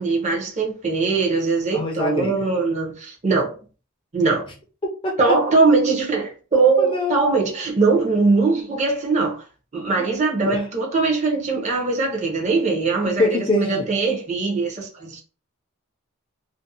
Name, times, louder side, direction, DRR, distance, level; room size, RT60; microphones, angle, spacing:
voice 1, 0.0-3.6 4.1-4.5 5.2-9.4 9.7-15.2, right 4 dB, 30° right, 0.6 m, -21 dB
voice 2, 1.7-2.4 5.0-5.1 6.8-7.2 10.0-10.1 10.4-10.6 13.2-13.9, left 2 dB, 25° left, 0.3 m, -24 dB
2.5 x 2.0 x 2.6 m
head